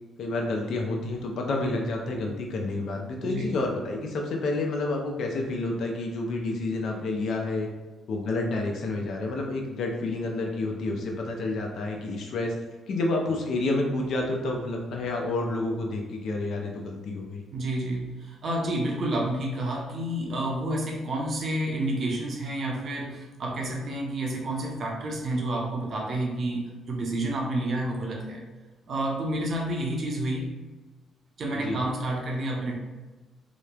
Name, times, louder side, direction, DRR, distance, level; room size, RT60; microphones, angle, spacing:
voice 1, 0.2-7.7 8.1-12.5 12.9-17.4 31.5-31.8, left 2 dB, 70° left, 1 dB, 0.5 m, -29 dB
voice 2, 3.2-3.5 17.5-26.6 26.9-28.5 28.9-30.6 31.4-32.8, right 1 dB, 55° right, -1 dB, 0.6 m, -29 dB
2.9 x 2.0 x 2.3 m, 1.2 s
cardioid pair, 90°, 0 cm